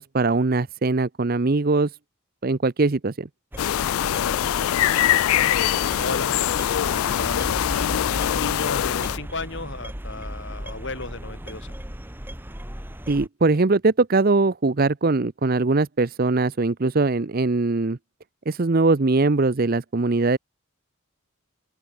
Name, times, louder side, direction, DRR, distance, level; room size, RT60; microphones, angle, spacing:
voice 1, 0.0-1.9 2.4-3.3 13.1-18.0 18.5-20.4, right 3 dB, 45° right, 0.7 m, -21 dB
sound 1, 3.5-13.3, equal, 10° right, 1.9 m, -35 dB
sound 2, 3.6-9.2, left 11 dB, 80° left, 0.3 m, -23 dB
voice 2, 4.0-5.3 5.6-11.8, left 3 dB, 55° left, 4.3 m, -35 dB
open air
head